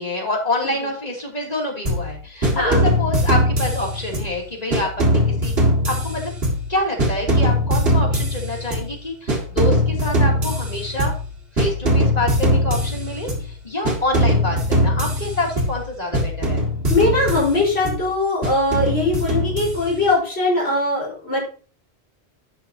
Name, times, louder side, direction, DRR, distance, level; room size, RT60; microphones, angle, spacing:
voice 1, 0.0-5.5 5.9-6.3 6.7-11.1 11.5-16.6, left 1 dB, 40° left, -1 dB, 2.9 m, -26 dB
sound 1, 1.9-2.1 2.4-4.4 4.7-6.7 7.0-8.9 9.3-11.3 11.6-13.5 13.9-15.9 16.1-18.0 18.4-20.1, equal, 70° right, 2.6 m, -21 dB
voice 2, 2.5-2.8 16.9-21.4, left 2 dB, 80° left, -4 dB, 4.8 m, -21 dB
11.5 x 8.7 x 2.8 m, 0.40 s
omnidirectional pair, 1.1 m